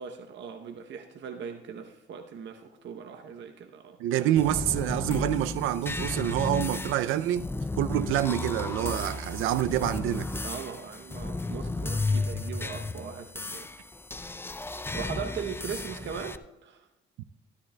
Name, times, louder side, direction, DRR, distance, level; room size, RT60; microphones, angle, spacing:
voice 1, 0.0-4.0 10.4-13.7 14.9-16.9, right 7 dB, 65° right, 5 dB, 0.8 m, -39 dB
voice 2, 4.0-7.5 7.8-10.4, right 12 dB, 90° right, 13 dB, 0.4 m, -27 dB
sound 1, 4.4-16.4, left 3 dB, 10° left, 0.4 m, -33 dB
13.0 x 12.5 x 2.2 m, 0.95 s
cardioid pair, 90°, 20 cm